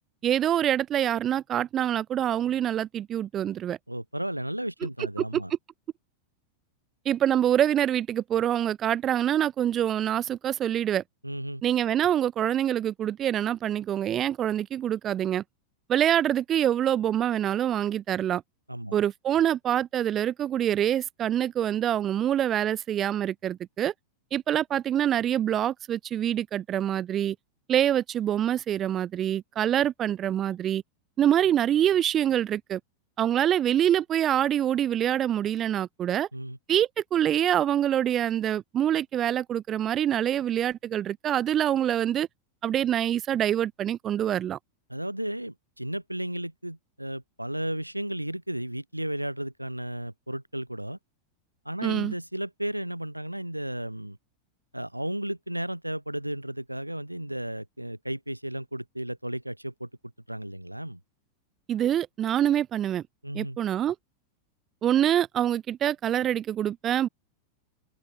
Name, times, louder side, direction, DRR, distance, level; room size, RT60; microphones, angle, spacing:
voice 1, 0.2-3.8 5.3-5.4 7.1-11.0 11.6-15.4 15.9-18.4 18.9-23.9 24.3-27.4 27.7-30.8 31.2-32.8 33.2-36.3 36.7-42.3 42.6-44.6 51.8-52.1 61.7-63.0 63.3-64.0 64.8-67.1, right 10 dB, 30° right, 2.0 m, -25 dB
voice 2, 3.9-5.5 11.2-11.6 18.7-19.0 36.3-36.6 44.9-51.0 51.6-54.2 54.7-59.9 60.3-61.0 63.2-63.6, right 1 dB, 90° right, 6.7 m, -34 dB
open air
figure-of-eight pair, 90°, 0 cm